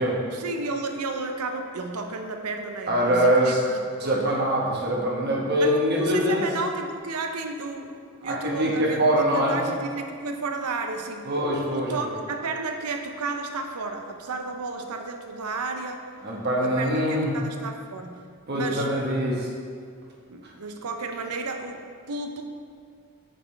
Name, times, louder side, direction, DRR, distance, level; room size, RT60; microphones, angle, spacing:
voice 1, 0.3-4.3 5.6-7.9 8.2-16.1 16.6-18.2 18.5-18.9 20.3-22.4, right 3 dB, 85° right, 5 dB, 0.6 m, -33 dB
voice 2, 2.9-3.6 4.0-6.4 8.2-9.6 11.3-11.9 16.2-17.3 18.5-19.5, equal, 45° right, -3 dB, 1.1 m, -23 dB
6.6 x 6.1 x 3.2 m, 2.2 s
head